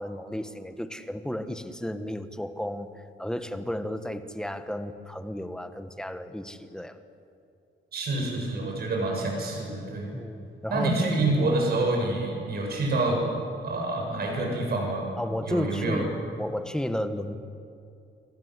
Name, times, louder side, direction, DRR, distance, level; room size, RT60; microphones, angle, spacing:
voice 1, 0.0-7.0 10.1-11.1 15.2-16.1 16.4-17.4, equal, 5° left, 9 dB, 1.2 m, -33 dB
voice 2, 7.9-10.1 10.7-13.3 13.6-15.1 15.4-16.1, right 2 dB, 50° right, 0 dB, 7.7 m, -27 dB
28.5 x 24.0 x 8.1 m, 2.5 s
wide cardioid pair, 175°, 21 cm